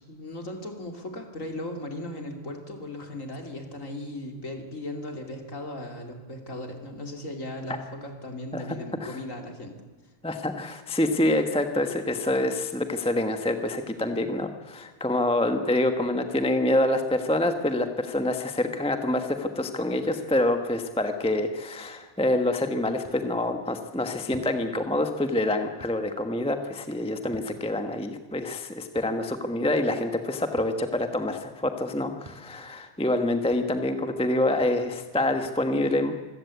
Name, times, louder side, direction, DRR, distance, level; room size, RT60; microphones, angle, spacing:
voice 1, 0.0-9.8, left 1 dB, 35° left, 4 dB, 3.1 m, -37 dB
voice 2, 8.5-9.2 10.2-36.2, left 1 dB, 5° left, 7 dB, 0.7 m, -26 dB
sound 1, 23.0-23.2 24.3-24.5 25.8-26.0 27.3-27.5 29.0-29.1 30.5-30.7 32.2-32.4 33.5-33.7 34.6-34.7, equal, 15° right, 3.0 m, -47 dB
25.5 x 16.5 x 8.4 m, 1.2 s
omnidirectional pair, 2.4 m